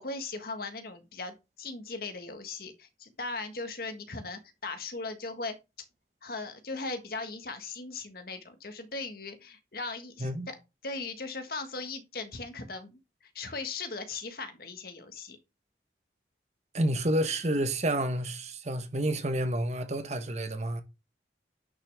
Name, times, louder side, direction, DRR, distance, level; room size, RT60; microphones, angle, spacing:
voice 1, 0.0-5.6 6.2-10.6 10.8-13.0 13.3-15.4, left 3 dB, 55° left, 1.6 m, -38 dB
voice 2, 16.7-20.8, right 1 dB, 40° right, 1.1 m, -29 dB
10.5 x 6.4 x 3.5 m
head